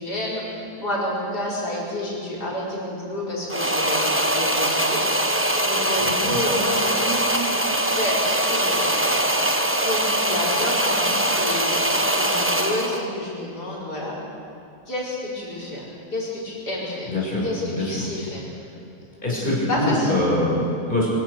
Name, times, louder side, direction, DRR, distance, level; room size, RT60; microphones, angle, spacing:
voice 1, 0.0-5.0 5.6-7.5 7.8-9.3 9.8-14.1 14.9-17.1 17.4-18.4 19.3-20.1, left 1 dB, 90° left, -5 dB, 5.7 m, -29 dB
sound 1, 3.5-13.1, right 1 dB, 10° right, 1.1 m, -22 dB
voice 2, 17.1-18.0 19.2-21.1, left 1 dB, 30° left, -5 dB, 6.6 m, -24 dB
24.5 x 16.0 x 6.6 m, 2.8 s
omnidirectional pair, 1.7 m